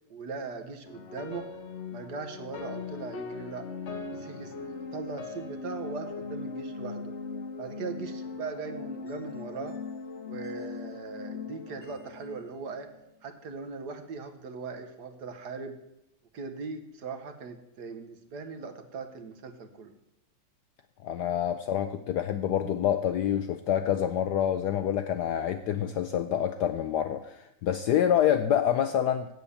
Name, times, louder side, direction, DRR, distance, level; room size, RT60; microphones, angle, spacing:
voice 1, 0.1-1.5 1.9-3.6 4.1-7.1 7.6-9.8 10.2-12.9 13.2-15.8 16.3-19.9, right 4 dB, 60° right, 7 dB, 1.3 m, -39 dB
sound 1, 0.9-13.1, left 4 dB, 50° left, 0.9 m, -40 dB
voice 2, 21.0-29.3, left 10 dB, 80° left, 9 dB, 0.9 m, -27 dB
8.3 x 7.8 x 7.0 m, 0.84 s
omnidirectional pair, 2.3 m